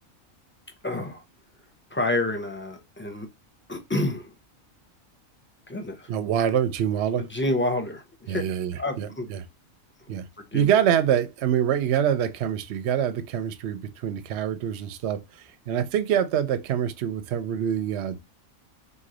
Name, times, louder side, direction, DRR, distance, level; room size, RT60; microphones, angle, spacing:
voice 1, 0.8-1.2 1.9-3.3 3.7-4.3 5.7-6.1 7.2-8.4 8.8-9.3 10.4-10.8, left 2 dB, 15° left, 0.4 m, -28 dB
voice 2, 6.1-7.3 8.3-9.4 10.1-10.3 10.5-18.2, right 9 dB, 65° right, 0.7 m, -25 dB
4.1 x 3.1 x 3.8 m
omnidirectional pair, 1.4 m